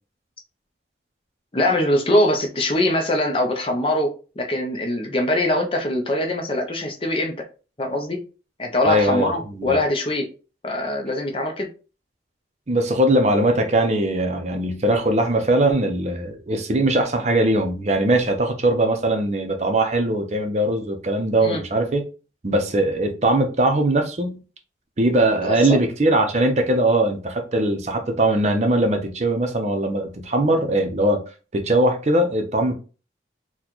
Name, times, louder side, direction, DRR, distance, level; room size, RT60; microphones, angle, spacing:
voice 1, 1.5-7.4 7.8-8.2 8.6-10.3 10.6-11.7 21.4-21.6 25.4-25.8, left 1 dB, 30° left, 0.6 m, -22 dB
voice 2, 8.9-9.8 12.7-22.0 22.4-24.4 25.0-31.2 31.5-32.7, right 1 dB, 40° right, 0.6 m, -20 dB
4.1 x 2.2 x 3.0 m
head